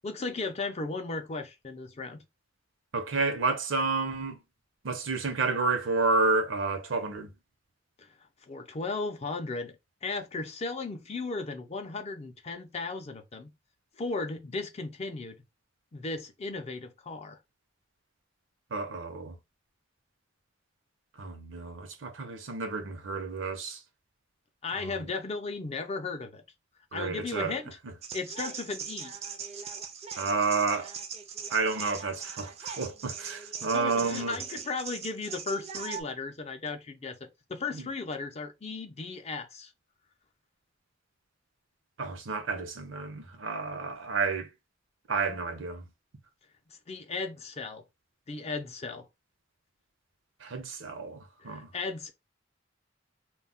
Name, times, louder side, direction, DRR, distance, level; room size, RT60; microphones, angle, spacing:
voice 1, 0.0-2.2 8.0-8.1 8.5-9.8 10.0-13.5 14.0-15.4 15.9-17.4 24.6-26.4 26.9-27.7 28.1-29.1 33.6-39.7 46.7-47.8 48.3-49.0 51.4-52.1, left 3 dB, 35° left, 0.5 m, -36 dB
voice 2, 2.9-4.4 4.8-7.3 18.7-19.4 21.2-23.8 24.8-25.0 26.9-27.6 30.2-30.9 31.5-34.4 37.7-37.8 42.0-44.5 45.1-45.8 50.4-51.7, right 3 dB, 85° right, 0.7 m, -30 dB
sound 1, 28.0-36.0, right 6 dB, 35° right, 0.4 m, -40 dB
2.2 x 2.1 x 3.7 m
head